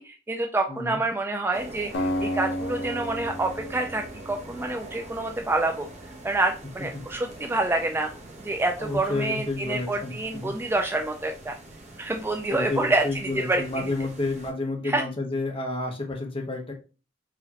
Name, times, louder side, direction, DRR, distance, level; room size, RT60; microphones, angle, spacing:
voice 1, 0.0-5.9 6.2-8.1 8.4-11.6 12.0-13.0 13.3-13.6 14.8-15.0, right 2 dB, 10° right, 4 dB, 0.3 m, -27 dB
voice 2, 0.7-1.0 6.9-7.0 8.8-10.5 12.5-16.7, left 2 dB, 30° left, 1 dB, 1.0 m, -30 dB
sound 1, 1.5-14.5, right 1 dB, 35° right, 1.0 m, -44 dB
Acoustic guitar, 1.9-5.1, equal, 65° left, 0.8 m, -32 dB
4.8 x 2.9 x 2.9 m, 0.33 s
head